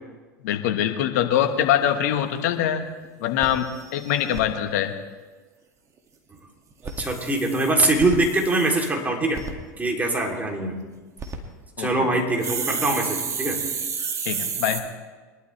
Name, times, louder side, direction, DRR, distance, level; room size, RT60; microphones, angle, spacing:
voice 1, 0.4-2.9 3.2-4.9 11.8-12.1 14.2-14.8, left 10 dB, 70° left, 6 dB, 1.4 m, -23 dB
sound 1, 2.2-2.3 2.7-2.8 3.0-3.1 3.4-4.4 6.7-8.9 9.3-9.5 11.0-11.4 12.4-14.8, right 6 dB, 35° right, 2.1 m, -31 dB
voice 2, 6.8-9.4 9.8-10.8 11.8-13.6, right 2 dB, 15° right, 1 dB, 3.1 m, -23 dB
23.0 x 12.0 x 3.3 m, 1.3 s
hypercardioid pair, 90°, 9 cm